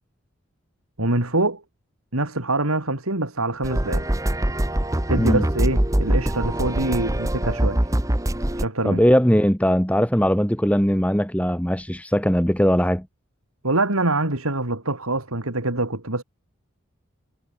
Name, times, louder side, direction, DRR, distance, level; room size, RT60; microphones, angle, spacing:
voice 1, 1.0-1.6 2.1-4.1 5.1-7.8 8.6-9.0 13.6-16.2, right 2 dB, 85° right, 3.9 m, -24 dB
sound 1, 3.6-8.7, right 1 dB, 15° right, 1.0 m, -23 dB
voice 2, 8.8-13.1, equal, 5° left, 3.2 m, -20 dB
head